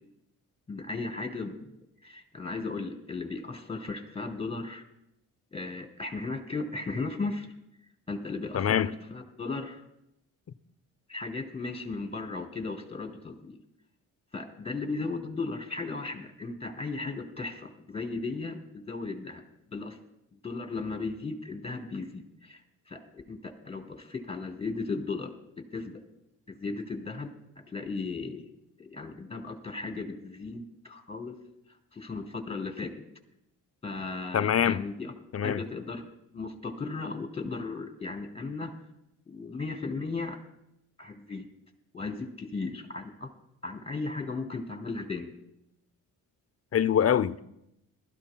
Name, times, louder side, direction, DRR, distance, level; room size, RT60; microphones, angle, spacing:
voice 1, 0.7-1.7 2.0-4.8 5.5-7.5 8.1-9.8 11.1-13.6 14.3-19.4 19.7-20.0 20.4-22.6 22.9-25.3 25.7-26.0 26.5-27.3 27.6-28.5 28.8-31.3 31.9-32.9 33.8-35.1 35.4-36.1 36.3-38.7 39.3-40.4 41.0-41.5 41.9-43.3 43.6-45.3, left 3 dB, 15° left, 3.3 m, -36 dB
voice 2, 8.5-8.9 34.3-34.8 35.3-35.6 46.7-47.4, left 9 dB, 35° left, 0.6 m, -24 dB
21.5 x 14.0 x 2.3 m
hypercardioid pair, 45°, 41 cm